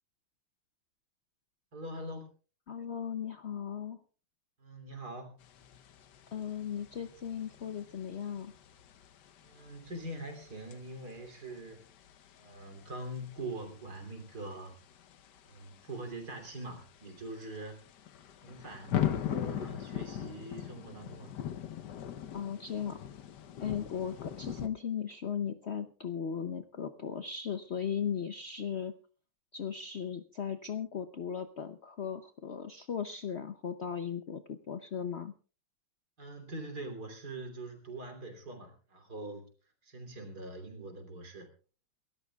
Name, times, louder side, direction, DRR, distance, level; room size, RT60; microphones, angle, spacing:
voice 1, 1.7-2.3 4.6-5.4 9.4-11.8 12.4-14.7 15.5-17.8 18.4-21.3 24.0-24.1 36.2-39.5 39.8-41.5, right 2 dB, 50° right, 4 dB, 3.6 m, -43 dB
voice 2, 2.7-4.0 6.3-8.5 22.3-23.0 23.6-28.9 29.5-35.3, left 8 dB, 85° left, 9 dB, 0.5 m, -37 dB
sound 1, 5.4-24.7, left 10 dB, 65° left, 1.4 m, -41 dB
28.5 x 13.5 x 2.4 m, 0.37 s
omnidirectional pair, 2.2 m